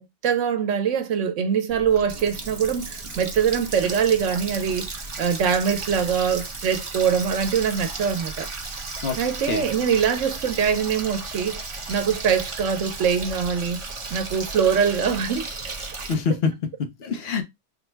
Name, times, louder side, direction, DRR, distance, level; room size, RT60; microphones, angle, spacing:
voice 1, 0.0-4.9 5.2-8.5 9.2-11.6 11.9-13.8 14.1-15.5, right 7 dB, 90° right, 1.1 m, -23 dB
Water tap faucet, 1.7-16.1, right 3 dB, 30° right, 0.6 m, -35 dB
voice 2, 16.1-17.4, left 5 dB, 60° left, 1.0 m, -25 dB
3.7 x 2.1 x 4.4 m
omnidirectional pair, 1.2 m